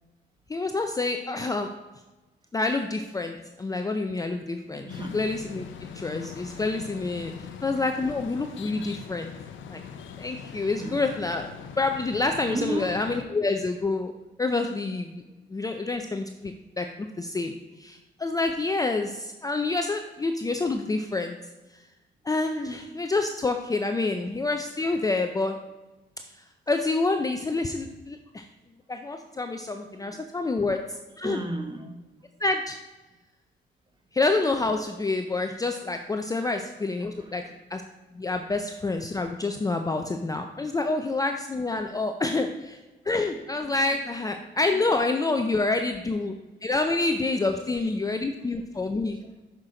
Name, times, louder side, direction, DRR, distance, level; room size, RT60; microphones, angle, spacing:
voice 1, 0.5-1.7 2.5-7.3 7.6-9.3 9.6-9.8 10.2-11.5 11.8-14.1 14.4-15.2 15.5-17.5 17.8-21.4 22.3-25.6 26.7-28.5 28.9-31.4 32.4-32.8 34.1-37.4 37.7-37.8 38.2-42.8 43.1-49.2, left 3 dB, 20° left, 5 dB, 0.4 m, -28 dB
voice 2, 4.8-5.2 7.0-7.1 7.4-7.5 10.6-11.0 12.5-13.0 17.0-17.1 22.8-23.1 29.7-30.7 31.2-32.0 36.4-36.5 37.2-37.5 43.6-43.7 44.4-44.8 47.4-47.9 48.2-48.3 48.6-49.4, right 2 dB, 25° right, 4 dB, 1.1 m, -38 dB
sound 1, 4.9-13.2, left 7 dB, 75° left, 0.6 m, -42 dB
6.1 x 5.8 x 3.8 m, 1.1 s
cardioid pair, 90°, 20 cm